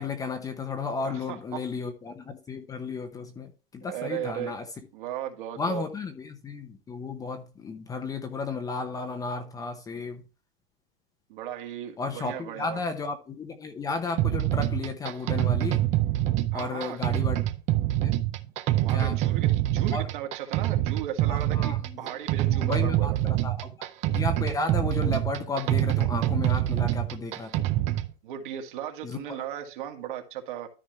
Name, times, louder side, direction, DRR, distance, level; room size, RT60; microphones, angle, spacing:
voice 1, 0.0-4.7 5.6-10.2 12.0-15.8 16.5-17.4 18.0-18.2 18.9-19.2 19.9-20.1 21.3-22.1 22.4-23.1 23.4-27.7 29.0-29.2, left 4 dB, 10° left, 0.8 m, -33 dB
voice 2, 1.0-1.6 3.9-4.5 4.9-5.8 11.3-12.8 16.5-17.0 18.8-23.1 28.2-30.7, right 10 dB, 55° right, 2.1 m, -36 dB
sound 1, 14.2-28.1, right 14 dB, 20° right, 0.5 m, -25 dB
13.0 x 5.1 x 3.1 m
hypercardioid pair, 150°, 31 cm